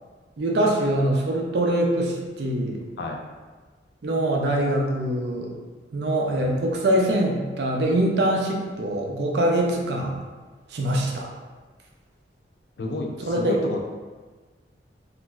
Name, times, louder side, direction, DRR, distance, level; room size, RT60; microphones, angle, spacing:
voice 1, 0.4-2.8 4.0-5.5 5.9-10.2 10.7-11.3 13.2-13.6, right 1 dB, 65° right, 0 dB, 0.5 m, -23 dB
voice 2, 12.8-13.9, left 2 dB, 70° left, 1 dB, 0.4 m, -30 dB
3.0 x 2.5 x 2.2 m, 1.4 s
head